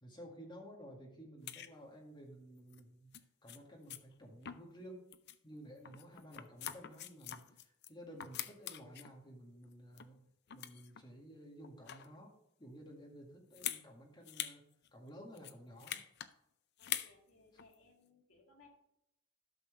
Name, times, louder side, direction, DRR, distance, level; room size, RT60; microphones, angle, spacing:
voice 1, 0.0-3.1 3.4-5.1 5.4-10.2 10.5-12.3 12.6-14.6 14.9-16.0, equal, 20° left, -1 dB, 1.9 m, -53 dB
sound 1, 1.5-1.7 2.7-2.8 3.1-3.2 3.5-3.6 3.9-4.0 4.4-4.8 5.1-5.4 5.8-7.9 8.2-9.1 9.6-10.2 10.5-11.0 11.6-12.2 13.5-13.8 14.2-14.6 14.8-14.9 15.3-16.3 16.8-17.1 17.6-17.7, left 11 dB, 50° left, 0.5 m, -44 dB
voice 2, 16.8-18.7, left 3 dB, 70° left, -1 dB, 2.3 m, -65 dB
12.5 x 6.0 x 3.3 m, 0.81 s
head